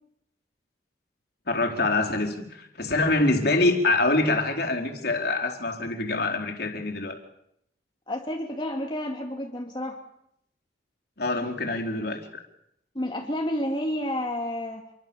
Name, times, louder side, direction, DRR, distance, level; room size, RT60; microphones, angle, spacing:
voice 1, 1.5-7.2 11.2-12.4, left 2 dB, 55° left, 2 dB, 4.5 m, -25 dB
voice 2, 8.1-10.0 11.3-11.5 12.9-14.8, left 1 dB, 25° left, 1 dB, 2.8 m, -30 dB
28.5 x 23.5 x 7.2 m, 0.76 s
head